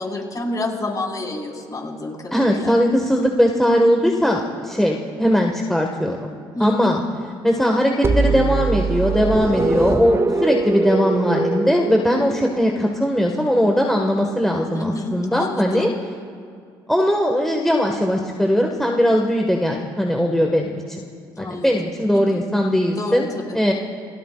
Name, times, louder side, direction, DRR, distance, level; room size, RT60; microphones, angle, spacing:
voice 1, 0.0-2.7 6.5-7.0 14.7-15.9 21.4-21.7 22.1-22.4 22.9-23.6, left 2 dB, 30° left, -1 dB, 5.0 m, -29 dB
voice 2, 2.3-6.4 6.6-7.0 7.4-15.9 16.9-21.0 21.4-23.3 23.5-23.7, equal, 5° left, 1 dB, 1.7 m, -19 dB
sound 1, 8.0-12.8, right 3 dB, 20° right, 0.6 m, -22 dB
29.0 x 18.0 x 2.5 m, 2.3 s
hypercardioid pair, 60°, 12 cm